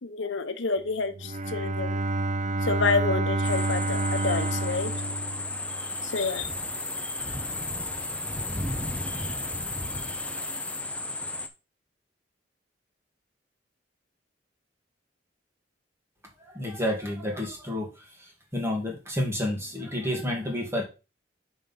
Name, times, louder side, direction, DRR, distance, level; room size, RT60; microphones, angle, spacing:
voice 1, 0.0-2.0 2.6-4.9 6.0-6.5, left 4 dB, 80° left, 0.9 m, -28 dB
Bowed string instrument, 1.1-6.0, right 2 dB, 40° right, 0.5 m, -29 dB
sound 1, 3.4-11.5, left 2 dB, 5° left, 0.8 m, -33 dB
voice 2, 16.5-17.9 18.5-20.8, left 1 dB, 15° right, 2.3 m, -29 dB
6.3 x 5.3 x 5.5 m
head